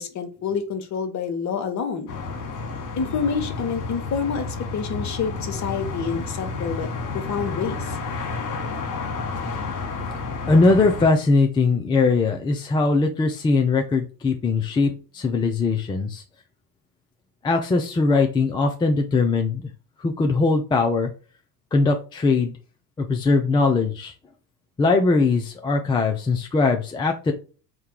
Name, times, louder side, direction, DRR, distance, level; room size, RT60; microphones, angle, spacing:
voice 1, 0.0-2.1 3.0-6.9 7.1-8.0, left 6 dB, 35° left, 7 dB, 1.0 m, -28 dB
sound 1, 2.1-11.1, left 4 dB, 65° left, 1.2 m, -31 dB
voice 2, 10.5-16.2 17.4-19.6 20.0-21.1 21.7-22.6 23.0-24.1 24.8-27.3, left 3 dB, 10° left, 3 dB, 0.4 m, -20 dB
3.5 x 2.2 x 4.4 m, 0.36 s
hypercardioid pair, 70°, 47 cm